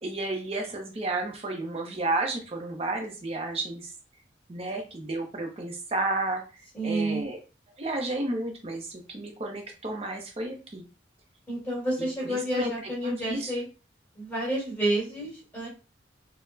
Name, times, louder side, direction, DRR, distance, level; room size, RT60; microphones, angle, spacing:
voice 1, 0.0-3.9 4.5-6.4 6.8-7.4 7.8-10.8 12.2-13.5, right 2 dB, 30° right, 2 dB, 0.6 m, -32 dB
voice 2, 6.7-7.2 11.5-13.7 14.2-15.7, right 1 dB, 10° left, -7 dB, 1.8 m, -29 dB
3.9 x 2.1 x 2.7 m, 0.33 s
head